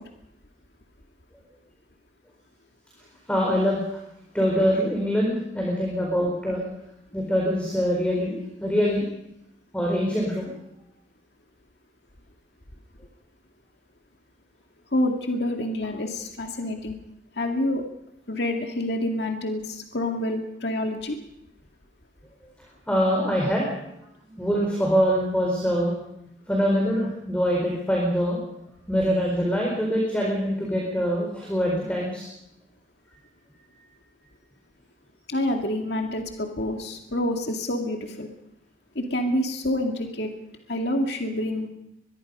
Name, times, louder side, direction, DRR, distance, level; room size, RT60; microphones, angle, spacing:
voice 1, 3.3-4.0 4.3-6.6 7.1-9.0 9.7-10.5 22.4-22.5 22.9-23.7 24.4-25.9 26.5-28.4 28.9-32.3, equal, 5° left, -2 dB, 4.6 m, -24 dB
voice 2, 14.9-16.9 17.4-17.8 18.3-21.2 35.3-38.3 39.0-40.3 40.7-41.7, left 1 dB, 65° left, 3 dB, 2.2 m, -27 dB
23.5 x 22.0 x 5.5 m, 0.81 s
head